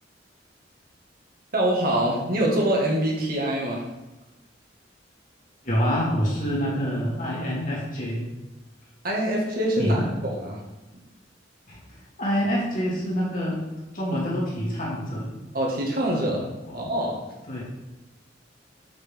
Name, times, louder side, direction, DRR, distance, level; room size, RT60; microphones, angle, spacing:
voice 1, 1.5-3.9 9.0-10.6 15.5-16.4 16.7-17.2, right 1 dB, 55° right, -2 dB, 1.8 m, -24 dB
voice 2, 5.6-8.3 9.8-10.1 11.7-11.8 12.2-13.6 13.9-15.3 16.7-16.8 17.5-17.6, equal, 50° left, -6 dB, 2.8 m, -26 dB
7.1 x 6.7 x 3.6 m, 1.0 s
head